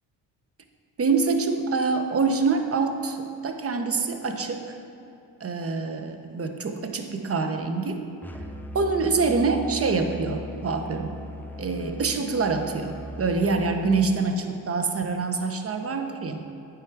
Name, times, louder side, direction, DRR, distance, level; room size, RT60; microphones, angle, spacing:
voice 1, 1.0-4.8 5.4-8.0 8.7-11.2 11.6-16.4, right 4 dB, 30° right, 6 dB, 0.7 m, -25 dB
Musical instrument, 8.2-13.9, equal, 5° left, 0.4 m, -39 dB
8.7 x 3.5 x 4.6 m, 2.7 s
hypercardioid pair, 45°, 48 cm